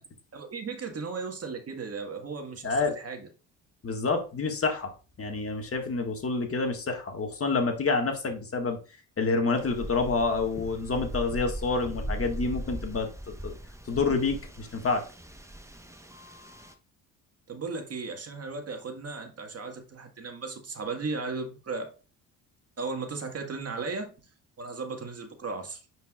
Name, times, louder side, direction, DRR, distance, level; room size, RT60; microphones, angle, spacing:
voice 1, 0.3-3.3 17.5-21.9 22.8-24.1 24.6-25.8, right 4 dB, 40° right, 4 dB, 1.7 m, -36 dB
voice 2, 2.6-3.0 3.8-8.8 9.2-13.1 13.4-13.5 13.9-15.0, left 4 dB, 35° left, 4 dB, 1.8 m, -28 dB
sound 1, 9.6-16.7, right 1 dB, 5° right, 1.1 m, -39 dB
9.2 x 4.8 x 2.4 m, 0.33 s
hypercardioid pair, 60°, 39 cm